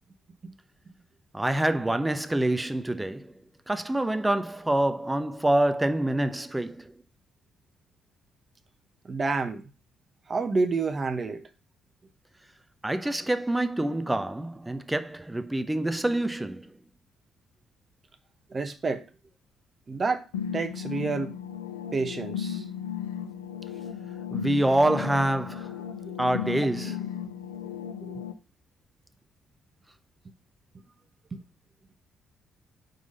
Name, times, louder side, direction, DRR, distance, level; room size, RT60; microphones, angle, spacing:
voice 1, 1.3-3.3 3.7-6.9 12.8-16.7 24.3-25.8 26.2-27.1, right 1 dB, 15° right, 0.7 m, -26 dB
voice 2, 9.0-9.6 10.3-11.4 18.5-19.0 19.9-20.2 20.5-21.3 21.9-22.6 26.1-26.2 31.3-31.4, right 4 dB, 40° right, 0.9 m, -28 dB
sound 1, 20.3-28.3, left 8 dB, 90° left, 0.4 m, -35 dB
4.7 x 3.9 x 5.3 m
hypercardioid pair, 45°, 0 cm